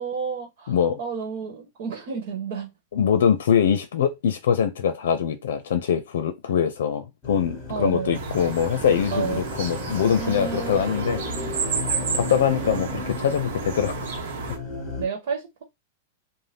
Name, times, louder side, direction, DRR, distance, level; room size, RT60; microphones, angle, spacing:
voice 1, 0.0-2.7 7.7-8.2 9.1-9.5 10.1-11.7 12.9-13.4 15.0-15.6, right 6 dB, 55° right, 1.1 m, -32 dB
voice 2, 0.7-1.0 2.9-11.2 12.1-13.9, left 8 dB, 85° left, 0.5 m, -23 dB
sound 1, 7.2-15.0, left 3 dB, 15° left, 1.0 m, -34 dB
sound 2, 8.1-14.6, right 5 dB, 80° right, 0.9 m, -31 dB
2.7 x 2.1 x 3.3 m
supercardioid pair, 160°, 0 cm